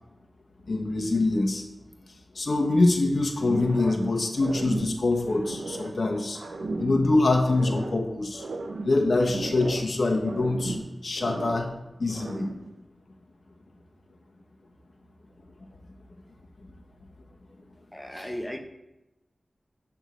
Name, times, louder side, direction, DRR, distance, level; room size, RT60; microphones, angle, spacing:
voice 1, 0.7-1.6 2.3-6.4 6.8-8.4 8.8-10.8 11.0-11.7 12.0-12.5 18.1-18.3, left 2 dB, 70° left, 2 dB, 1.1 m, -24 dB
sound 1, 3.4-4.1 4.3-6.0 6.3-8.0 8.3-10.0 10.2-11.8 12.1-12.7, right 3 dB, 85° right, 0.7 m, -35 dB
voice 2, 17.9-18.6, equal, 10° left, 6 dB, 0.9 m, -35 dB
8.2 x 3.6 x 6.1 m, 0.94 s
cardioid pair, 40°, 0 cm